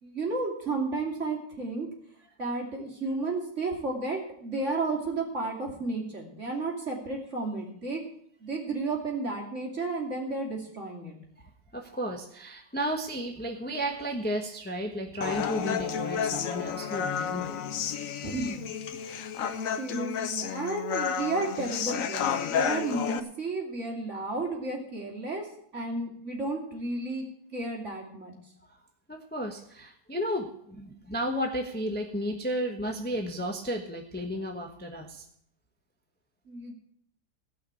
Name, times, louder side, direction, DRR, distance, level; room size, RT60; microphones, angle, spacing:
voice 1, 0.0-1.9 2.4-8.0 8.4-11.1 18.2-18.6 19.0-19.2 19.8-25.5 25.7-27.2 27.5-28.4 36.5-36.7, right 3 dB, 45° right, -1 dB, 3.2 m, -32 dB
voice 2, 11.7-17.6 29.1-35.2, equal, 5° left, 2 dB, 1.0 m, -33 dB
Human voice, 15.2-23.2, left 7 dB, 60° left, 1.0 m, -31 dB
17.0 x 5.8 x 8.4 m, 0.69 s
omnidirectional pair, 1.8 m